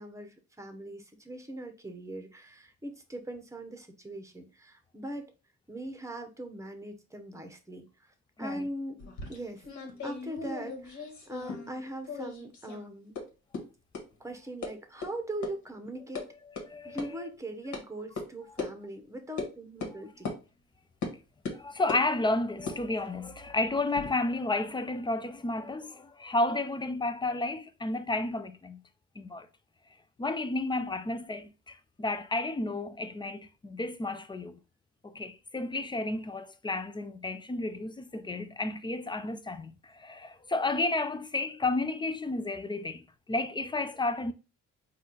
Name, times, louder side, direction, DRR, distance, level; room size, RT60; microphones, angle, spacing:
voice 1, 0.0-5.3 5.7-9.0 9.3-9.7 10.0-13.2 14.2-16.3 16.8-20.3, right 1 dB, 10° right, 0.9 m, -41 dB
sound 1, 9.0-11.8 12.0-12.8 13.1-13.2 13.5-13.6 13.9-14.0 14.6-14.7 15.0-15.1 15.4-15.5 15.8-16.2 16.6-16.7 17.0-17.1 17.7-17.8 18.2-18.3 18.6-18.7 19.4-19.5 19.8-19.9 20.2-20.4 21.0-21.1 21.4-22.1 22.6-24.1, left 4 dB, 70° left, 1.5 m, -38 dB
voice 2, 16.5-17.3 21.5-28.8 29.2-29.5 30.2-34.6 35.0-44.3, left 2 dB, 15° left, 0.4 m, -32 dB
4.2 x 2.5 x 3.9 m
cardioid pair, 90°, 30 cm